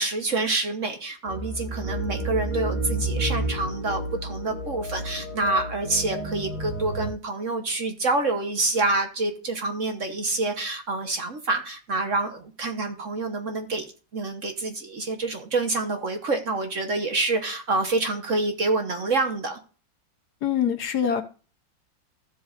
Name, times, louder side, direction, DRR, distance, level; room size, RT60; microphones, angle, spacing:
voice 1, 0.0-13.9 14.1-19.6, right 3 dB, 45° right, 5 dB, 1.3 m, -27 dB
sound 1, 1.3-7.1, right 1 dB, 80° right, 3.0 m, -30 dB
voice 2, 20.4-21.2, left 8 dB, 60° left, 8 dB, 1.4 m, -24 dB
14.0 x 7.6 x 2.5 m, 0.37 s
omnidirectional pair, 2.0 m